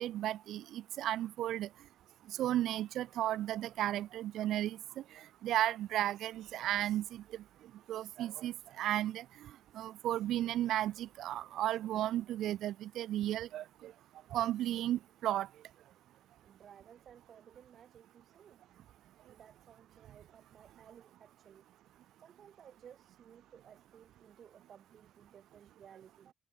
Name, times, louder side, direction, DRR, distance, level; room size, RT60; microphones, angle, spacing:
voice 1, 0.0-1.7 2.4-4.8 5.4-7.2 7.9-9.2 9.7-13.9 14.3-15.5, right 13 dB, 60° right, 0.4 m, -34 dB
voice 2, 16.4-18.6 19.3-21.7 22.2-26.3, right 8 dB, 40° right, 3.2 m, -58 dB
cardioid pair, 145°, 0 cm